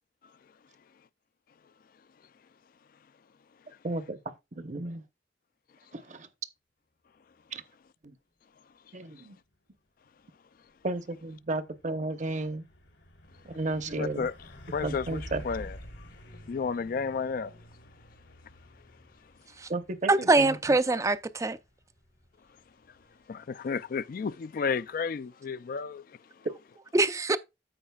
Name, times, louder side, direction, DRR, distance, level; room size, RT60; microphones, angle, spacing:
voice 1, 3.8-5.0 5.9-6.3 7.5-7.6 8.0-8.2 8.9-9.4 10.8-12.6 13.4-14.3 14.8-15.4 19.7-20.6, right 2 dB, 45° right, 0.8 m, -33 dB
Truck, 10.7-25.0, equal, 85° left, 3.5 m, -50 dB
voice 2, 14.0-14.3 14.7-15.2 15.4-15.7 16.5-17.5 23.3-26.0, left 5 dB, 50° left, 0.3 m, -32 dB
voice 3, 20.1-21.6 26.9-27.4, right 2 dB, 15° right, 0.4 m, -23 dB
14.0 x 4.9 x 2.3 m
head